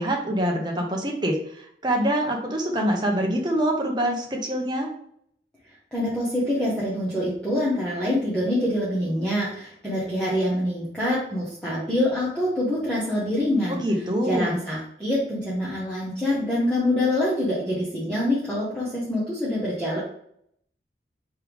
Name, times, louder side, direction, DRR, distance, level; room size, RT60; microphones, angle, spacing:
voice 1, 0.0-4.9 13.7-14.6, right 1 dB, 25° right, 1 dB, 0.7 m, -25 dB
voice 2, 5.9-13.8 14.2-20.0, left 1 dB, 5° left, -8 dB, 0.9 m, -25 dB
4.6 x 3.3 x 3.5 m, 0.68 s
head